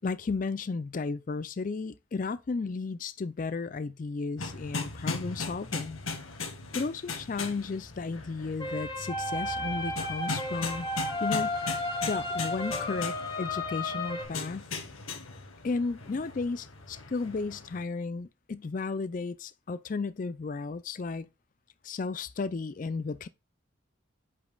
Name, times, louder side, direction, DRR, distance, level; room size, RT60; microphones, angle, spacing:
voice 1, 0.0-6.0 6.7-10.9 11.2-11.6 12.1-14.7 15.6-21.3 21.8-23.3, left 4 dB, 40° left, 0.4 m, -34 dB
sound 1, 4.4-17.8, left 4 dB, 85° left, 1.7 m, -39 dB
sound 2, 8.6-14.2, left 2 dB, 20° left, 1.3 m, -33 dB
8.1 x 5.2 x 2.3 m
head